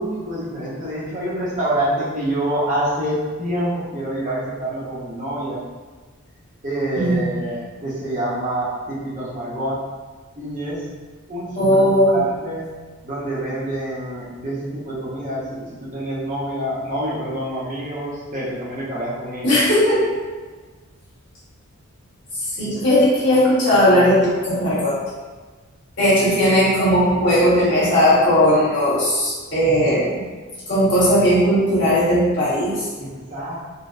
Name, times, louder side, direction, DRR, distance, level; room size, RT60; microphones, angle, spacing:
voice 1, 0.0-5.6 6.6-9.8 10.4-10.9 11.3-12.7 13.0-19.6 33.0-33.5, right 1 dB, 35° right, -7 dB, 0.6 m, -27 dB
voice 2, 6.9-7.3 11.5-12.2 19.4-20.1 22.5-25.0 26.0-30.2 30.7-32.9, equal, 55° left, -11 dB, 1.3 m, -17 dB
3.9 x 2.0 x 2.5 m, 1.4 s
head